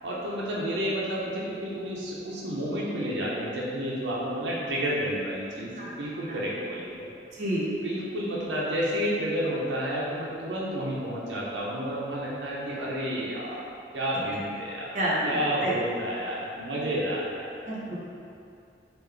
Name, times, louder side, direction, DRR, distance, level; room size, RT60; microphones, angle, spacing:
voice 1, 0.0-7.1 7.8-13.6 13.9-14.9 15.2-17.5, equal, 90° right, -6 dB, 0.6 m, -30 dB
voice 2, 14.9-15.4 15.6-15.7 17.7-17.9, right 1 dB, 40° right, -7 dB, 0.7 m, -28 dB
3.8 x 2.5 x 3.3 m, 2.5 s
head